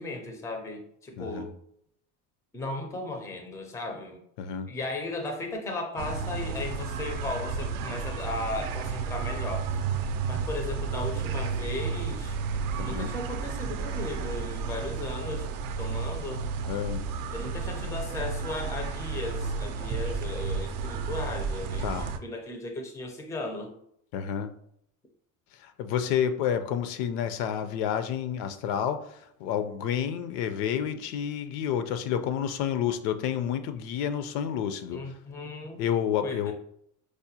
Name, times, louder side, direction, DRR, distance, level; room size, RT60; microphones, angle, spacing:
voice 1, 0.0-1.5 2.5-4.2 4.7-9.8 10.3-12.4 12.8-15.5 15.8-16.5 17.3-23.7 34.9-35.8 36.2-36.5, left 2 dB, 10° left, 4 dB, 0.4 m, -36 dB
voice 2, 1.2-1.5 4.4-4.7 12.8-13.1 16.7-17.0 21.8-22.1 24.1-24.5 25.5-35.0 35.8-36.5, left 9 dB, 75° left, 9 dB, 0.5 m, -30 dB
sound 1, 6.0-22.2, right 5 dB, 55° right, 0.5 m, -32 dB
4.8 x 2.1 x 2.7 m, 0.71 s
cardioid pair, 120°, 41 cm